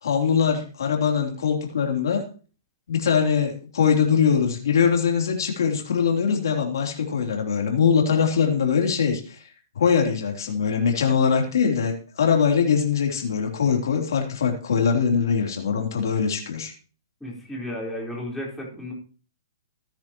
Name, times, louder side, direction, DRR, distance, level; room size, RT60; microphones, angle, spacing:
voice 1, 0.0-2.2 2.9-9.5 9.7-16.7, left 6 dB, 75° left, 1 dB, 3.4 m, -22 dB
voice 2, 17.2-18.9, left 1 dB, 5° left, -4 dB, 4.4 m, -33 dB
17.5 x 10.5 x 3.1 m, 0.39 s
hypercardioid pair, 155°, 2 cm